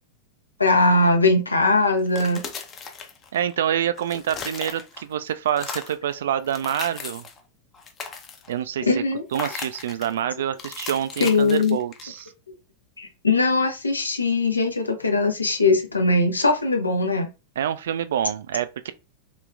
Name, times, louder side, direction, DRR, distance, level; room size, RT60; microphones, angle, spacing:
voice 1, 0.6-2.4 8.9-9.2 11.2-11.8 12.5-12.6 13.0-17.3, left 3 dB, 80° left, 0.7 m, -20 dB
sound 1, 2.0-3.6 3.9-5.1 5.5-6.0 6.4-7.4 7.7-8.6 9.3-10.1 10.6-12.3, left 5 dB, 25° left, 0.6 m, -37 dB
voice 2, 3.3-7.3 8.5-9.0 9.3-12.3 17.6-18.9, right 10 dB, 60° right, 0.3 m, -27 dB
3.3 x 3.1 x 2.4 m
figure-of-eight pair, 90°, 0 cm